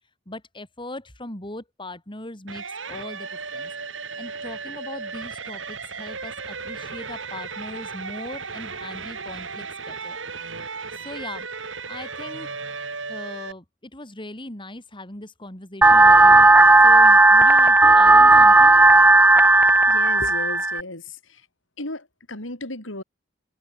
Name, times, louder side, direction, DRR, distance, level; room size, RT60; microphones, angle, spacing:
voice 1, 0.3-3.7 4.2-10.2 10.5-11.5 11.9-12.5 13.1-16.5 16.8-18.8, left 1 dB, 25° left, 4.7 m, -39 dB
sound 1, 2.5-13.5, right 4 dB, 80° right, 7.7 m, -35 dB
sound 2, 15.8-20.8, right 2 dB, 10° right, 0.3 m, -13 dB
voice 2, 19.9-21.5 21.8-23.0, left 2 dB, 85° left, 6.5 m, -35 dB
head